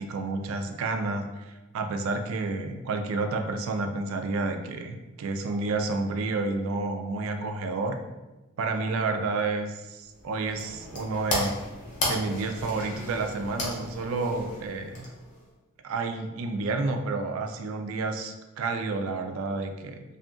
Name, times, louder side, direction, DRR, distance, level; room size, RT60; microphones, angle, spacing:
voice 1, 0.0-8.0 8.6-11.6 12.1-15.1 15.8-20.0, right 3 dB, 65° right, 5 dB, 0.3 m, -30 dB
sound 1, 10.1-15.5, left 1 dB, 35° left, 0.6 m, -34 dB
2.7 x 2.4 x 2.4 m, 1.1 s
head